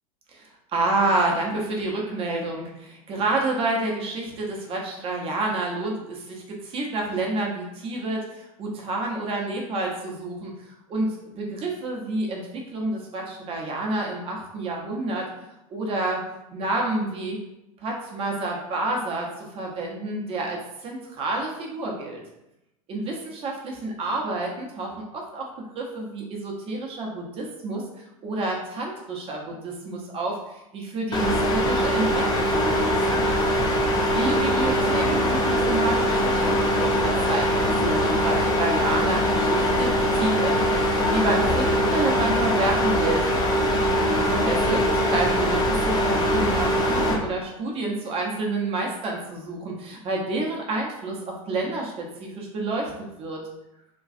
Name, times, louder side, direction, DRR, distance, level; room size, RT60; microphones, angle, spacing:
voice 1, 0.7-10.5 10.9-15.3 15.7-16.2 16.5-17.4 17.8-22.2 22.9-25.5 25.7-27.8 28.2-33.4 34.1-43.5 44.3-52.9 53.2-53.4, right 2 dB, 30° right, -1 dB, 0.7 m, -29 dB
sound 1, 31.1-47.1, equal, 20° left, 0.6 m, -22 dB
3.0 x 2.3 x 2.5 m, 0.89 s
figure-of-eight pair, 85°, 19 cm